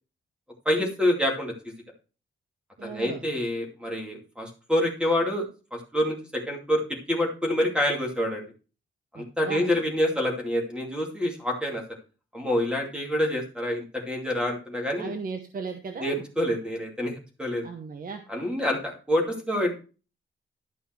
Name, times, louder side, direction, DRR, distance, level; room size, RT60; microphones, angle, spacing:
voice 1, 0.6-1.7 2.8-6.8 7.1-8.5 9.1-11.8 12.3-15.2 16.0-17.1 17.4-17.7 18.3-19.7, left 1 dB, 5° right, 1 dB, 2.5 m, -27 dB
voice 2, 2.8-3.2 9.1-9.6 15.0-16.2 17.6-18.2, right 4 dB, 45° right, 6 dB, 0.9 m, -36 dB
12.0 x 5.4 x 4.4 m, 0.34 s
wide cardioid pair, 170°, 21 cm